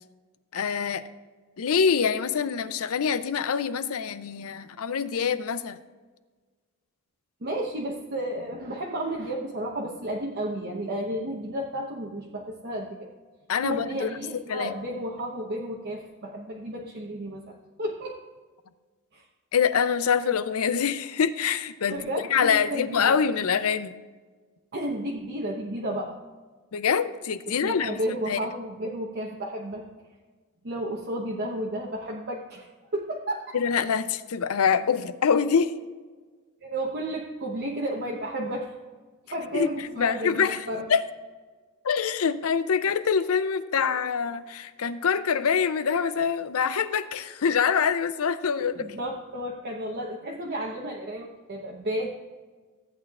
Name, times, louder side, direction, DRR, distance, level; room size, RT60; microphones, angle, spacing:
voice 1, 0.5-1.0 1.6-5.8 13.5-14.1 14.5-14.7 19.5-22.0 22.3-23.9 26.7-28.0 28.3-28.4 33.5-35.7 39.5-39.7 40.0-41.0 41.8-48.7, left 6 dB, 75° left, 13 dB, 0.5 m, -25 dB
voice 2, 7.4-13.1 13.6-18.2 19.1-19.2 21.9-23.1 24.7-26.2 27.5-29.8 30.6-33.6 36.6-38.7 39.3-40.9 48.6-52.1, right 1 dB, 50° right, -2 dB, 0.9 m, -32 dB
15.0 x 8.7 x 2.4 m, 1.4 s
head